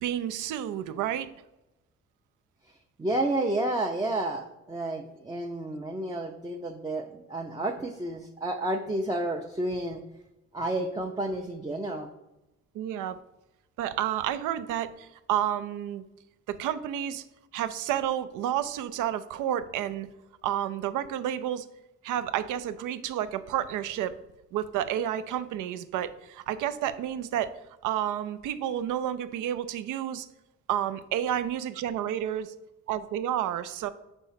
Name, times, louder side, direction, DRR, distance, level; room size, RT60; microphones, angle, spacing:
voice 1, 0.0-1.3 12.7-13.2 13.8-16.0 16.5-17.2 17.5-20.1 20.4-21.7 22.0-24.1 24.5-27.5 27.8-30.3 30.7-32.5 32.9-33.9, right 11 dB, 85° right, 13 dB, 0.5 m, -30 dB
voice 2, 3.0-10.0 10.5-12.1, right 1 dB, 15° right, 2 dB, 0.5 m, -30 dB
4.4 x 4.2 x 5.6 m, 0.96 s
cardioid pair, 90°, 30 cm